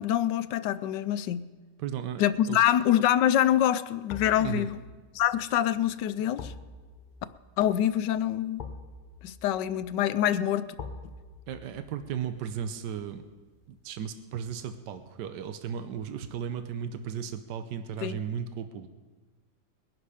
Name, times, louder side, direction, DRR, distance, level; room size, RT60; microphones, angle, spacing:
voice 1, 0.0-1.5 2.2-4.8 5.1-6.5 7.6-8.6 9.2-10.7 18.0-18.2, left 11 dB, 80° left, 14 dB, 1.2 m, -25 dB
voice 2, 1.8-2.6 4.4-4.7 11.5-13.2 13.7-18.9, right 8 dB, 80° right, 9 dB, 1.4 m, -35 dB
sound 1, 2.3-2.7 4.1-15.1 15.4-15.6, left 4 dB, 40° left, 0.7 m, -47 dB
21.0 x 11.0 x 4.9 m, 1.3 s
omnidirectional pair, 1.9 m